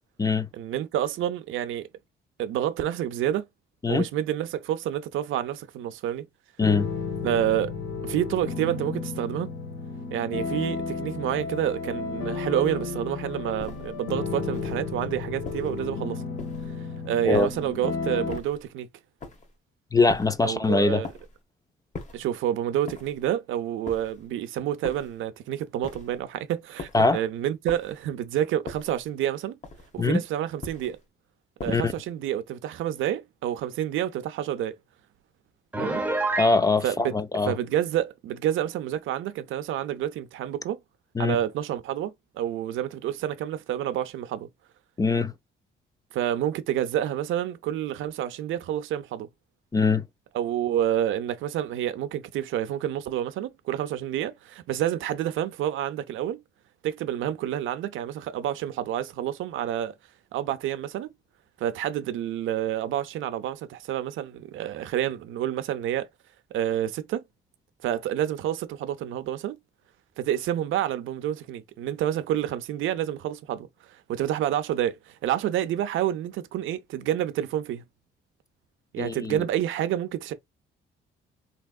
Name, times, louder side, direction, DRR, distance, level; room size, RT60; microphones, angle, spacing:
voice 1, 0.5-1.9 2.4-3.5 3.9-6.3 7.2-7.7 8.0-9.5 10.1-16.2 17.0-18.9 20.4-21.1 22.1-29.6 29.9-31.0 31.6-34.7 35.8-36.0 36.8-36.9 37.4-40.8 41.2-44.5 46.1-49.3 50.3-56.4 56.8-59.9 60.3-61.1 61.6-66.1 66.5-67.2 67.8-69.6 70.2-73.7 74.1-77.8 78.9-80.3, right 11 dB, 80° right, 0.5 m, -28 dB
sound 1, 6.6-18.4, left 4 dB, 80° left, 1.0 m, -33 dB
sound 2, 13.6-14.0 14.5-14.9 15.4-15.8 16.4-16.8 17.3-17.8 18.3-18.7 19.2-19.5 20.1-20.5 21.0-21.4 21.9-22.3 22.9-23.3 23.8-24.3 24.8-25.2 25.8-26.2 26.8-27.1 27.7-28.1 28.7-29.1 29.6-30.0 30.6-31.0 31.6-32.0, left 4 dB, 40° left, 1.0 m, -41 dB
voice 2, 19.9-21.0 26.9-27.2 30.0-30.2 31.7-31.9 36.4-37.5 41.2-41.4 45.0-45.3 49.7-50.0 79.0-79.4, left 3 dB, 20° left, 0.4 m, -22 dB
Piano, 35.7-36.6, right 2 dB, 5° right, 0.8 m, -27 dB
3.4 x 2.9 x 2.3 m
cardioid pair, 90°, 20 cm